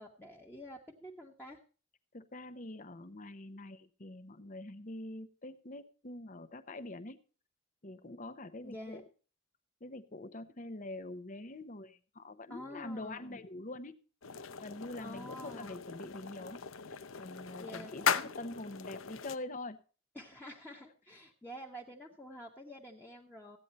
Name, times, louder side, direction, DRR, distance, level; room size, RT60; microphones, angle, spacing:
voice 1, 0.0-1.6 8.6-9.0 12.5-13.4 14.9-15.7 17.6-18.0 20.1-23.6, equal, 10° left, -2 dB, 1.3 m, -48 dB
voice 2, 2.1-7.2 7.8-9.0 9.8-13.9 14.6-16.6 16.9-19.8, left 2 dB, 40° left, 11 dB, 1.0 m, -45 dB
sound 1, 14.2-19.4, left 6 dB, 75° left, 0.7 m, -38 dB
15.0 x 9.5 x 4.1 m, 0.37 s
head